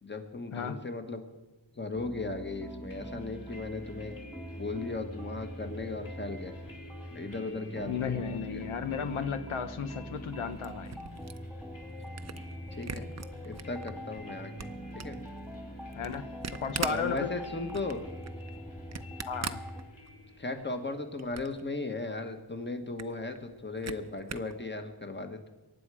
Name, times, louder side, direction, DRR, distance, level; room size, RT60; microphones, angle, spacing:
voice 1, 0.0-1.2 1.8-4.3 4.6-6.5 7.1-8.2 8.5-8.6 12.7-13.1 13.4-14.7 14.9-15.2 16.9-18.0 20.4-25.5, left 3 dB, 20° left, 6 dB, 1.5 m, -37 dB
sound 1, 1.9-19.8, equal, ahead, 1.8 m, -44 dB
sound 2, 2.9-21.6, left 1 dB, 40° left, 3.5 m, -51 dB
voice 2, 7.9-10.9 15.9-16.2 16.5-17.3 19.2-19.6, left 6 dB, 90° left, 9 dB, 1.0 m, -34 dB
Camera, 10.3-13.9 14.3-20.4 20.8-21.7 22.0-22.1 22.4-22.5 22.8-24.6, right 6 dB, 35° right, 0.6 m, -41 dB
23.0 x 9.6 x 4.9 m, 1.1 s
wide cardioid pair, 105°, 48 cm